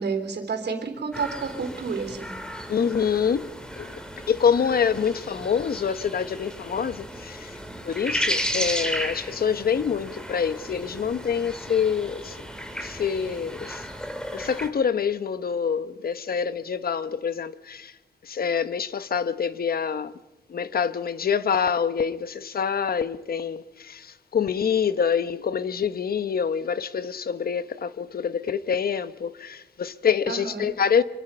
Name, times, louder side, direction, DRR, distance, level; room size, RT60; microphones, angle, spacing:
voice 1, 0.0-2.3 30.3-30.7, right 5 dB, 75° right, 3.5 m, -30 dB
sound 1, 1.1-14.7, equal, 5° left, 2.2 m, -34 dB
voice 2, 2.7-12.4 12.8-13.9 14.3-17.9 18.2-20.1 20.5-31.0, left 7 dB, 60° left, 0.9 m, -26 dB
25.5 x 23.0 x 5.5 m
wide cardioid pair, 130°, 18 cm